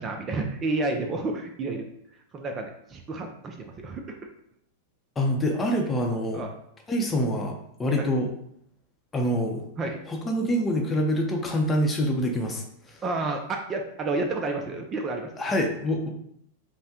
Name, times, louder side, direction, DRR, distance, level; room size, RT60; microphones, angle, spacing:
voice 1, 0.0-1.9 2.3-4.2 6.3-6.5 7.9-8.1 9.8-10.0 13.0-15.3, right 3 dB, 25° right, 4 dB, 0.5 m, -30 dB
voice 2, 5.2-6.4 6.9-8.3 9.1-9.6 10.1-13.0 15.4-16.1, equal, 15° left, 1 dB, 0.7 m, -26 dB
5.6 x 2.2 x 2.9 m, 0.72 s
hypercardioid pair, 120°, 0 cm